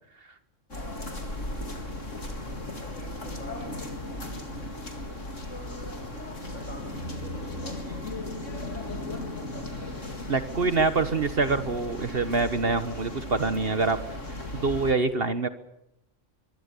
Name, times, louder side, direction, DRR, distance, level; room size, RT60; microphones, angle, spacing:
sound 1, 0.7-14.9, left 1 dB, 85° left, 4.4 m, -36 dB
voice 1, 2.6-4.0 6.5-8.1, equal, 35° left, 3 dB, 8.0 m, -47 dB
voice 2, 10.3-14.0 14.5-15.5, right 3 dB, 50° right, 10 dB, 1.5 m, -25 dB
24.5 x 23.5 x 8.4 m, 0.82 s
omnidirectional pair, 1.3 m